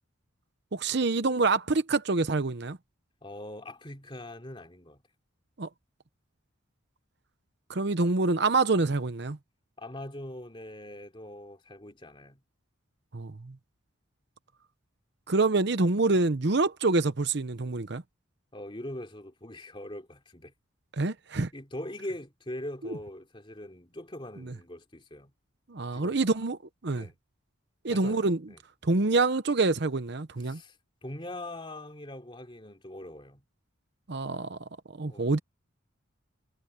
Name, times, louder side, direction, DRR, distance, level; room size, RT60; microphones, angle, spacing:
voice 1, 0.7-2.8 5.6-5.7 7.7-9.4 13.1-13.5 15.3-18.0 20.9-21.5 22.8-23.0 24.5-24.6 25.7-26.6 26.8-27.1 27.8-28.4 28.8-30.6 34.1-34.6 35.0-35.4, right 3 dB, 55° right, 0.8 m, -26 dB
voice 2, 3.2-5.0 9.8-12.4 18.5-20.5 21.5-25.3 25.9-26.3 26.9-27.1 27.9-28.6 30.4-30.8 31.0-33.4 35.1-35.3, left 1 dB, 25° left, 3.0 m, -42 dB
head